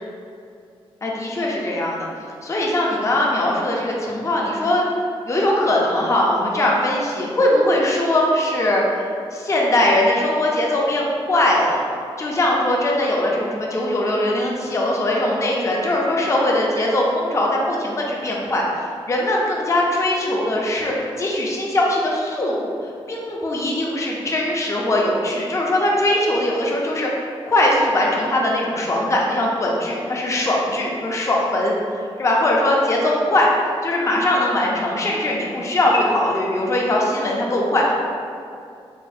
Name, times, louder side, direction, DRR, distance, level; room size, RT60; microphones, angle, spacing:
voice 1, 1.0-2.1 2.4-4.9 5.3-11.8 12.2-33.5 33.8-37.9, left 1 dB, 30° left, -2 dB, 0.5 m, -21 dB
3.9 x 2.0 x 2.6 m, 2.4 s
wide cardioid pair, 100°, 10 cm